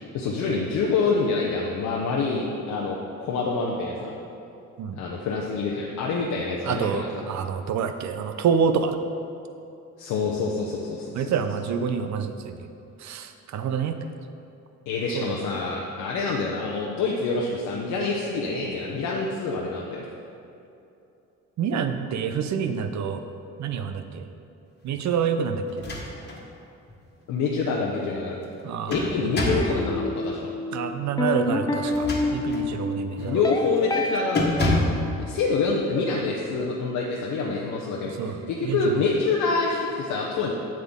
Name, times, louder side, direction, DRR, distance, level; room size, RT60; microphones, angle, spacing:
voice 1, 0.1-4.1 5.0-7.2 10.0-11.3 14.9-20.0 27.3-28.4 28.9-30.4 33.2-34.6 35.2-40.5, left 4 dB, 85° left, -2 dB, 0.8 m, -26 dB
voice 2, 6.7-9.0 11.1-12.7 13.0-14.0 15.1-15.3 21.6-23.2 23.6-24.3 24.8-25.6 28.6-29.0 30.7-33.4 38.2-39.0, right 6 dB, 65° right, 8 dB, 0.7 m, -27 dB
sound 1, 25.7-26.4 26.9-27.0 28.4-29.8 31.8-32.7 33.2-33.4 33.8-34.0 34.3-35.0, left 2 dB, 35° left, 1.5 m, -27 dB
sound 2, 29.5-34.8, left 2 dB, 15° left, 0.5 m, -28 dB
7.7 x 7.5 x 3.7 m, 2.7 s
cardioid pair, 90°, 30 cm